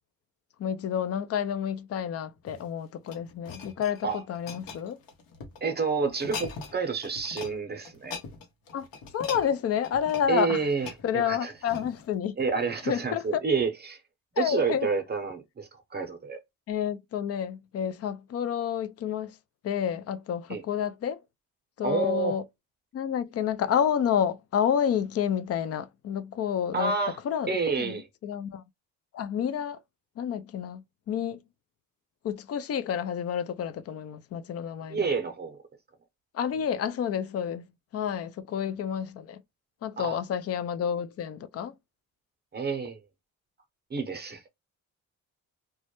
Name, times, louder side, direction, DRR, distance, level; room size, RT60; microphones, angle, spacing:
voice 1, 0.6-5.0 8.7-8.9 9.1-10.6 11.0-12.3 12.9-13.4 14.4-14.9 16.7-19.4 19.6-21.2 21.8-22.4 22.9-26.9 27.2-27.5 27.8-28.6 29.1-29.8 30.2-31.4 32.2-35.1 36.3-37.6 37.9-39.4 39.8-41.7, left 8 dB, 45° left, 0.4 m, -29 dB
sound 1, 2.4-5.6 6.1-6.8 7.0-7.5 7.8-12.1 12.7-12.8, left 5 dB, 75° left, 0.9 m, -42 dB
voice 2, 5.6-8.2 10.3-11.5 12.4-14.0 14.4-16.4 20.5-20.6 21.8-22.4 26.7-27.2 27.5-28.1 34.9-35.6 40.0-40.2 42.5-43.0 43.9-44.5, right 5 dB, 30° right, 0.7 m, -29 dB
2.2 x 2.0 x 2.9 m
cardioid pair, 85°, 35 cm